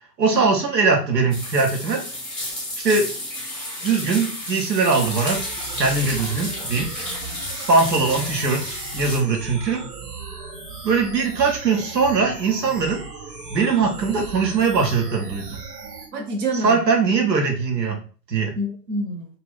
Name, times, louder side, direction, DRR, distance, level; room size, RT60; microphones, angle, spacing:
voice 1, 0.2-2.0 2.8-3.1 3.8-5.4 5.8-6.9 7.7-9.8 10.8-13.0 13.5-15.6 16.6-18.0 18.3-18.5, right 4 dB, 80° right, 2 dB, 0.8 m, -21 dB
sound 1, 1.3-9.2, left 1 dB, ahead, 0.6 m, -31 dB
sound 2, 5.0-16.1, right 4 dB, 65° right, 1.1 m, -37 dB
voice 2, 7.1-7.5 16.1-16.8 18.6-19.3, right 1 dB, 30° right, 1 dB, 0.8 m, -28 dB
2.4 x 2.3 x 3.4 m, 0.38 s
figure-of-eight pair, 105°, 50 cm